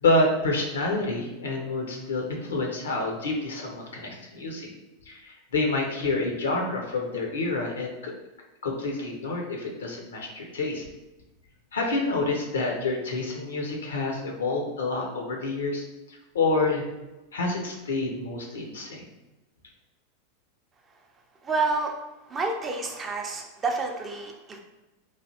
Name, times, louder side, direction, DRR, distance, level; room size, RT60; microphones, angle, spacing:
voice 1, 0.0-4.7 5.1-8.1 8.6-10.8 11.7-16.8 17.3-19.1, left 2 dB, 75° left, 0 dB, 0.6 m, -28 dB
voice 2, 21.4-21.9 22.3-24.6, right 3 dB, 25° right, 2 dB, 0.5 m, -29 dB
3.1 x 2.3 x 2.7 m, 1.0 s
figure-of-eight pair, 90°, 0 cm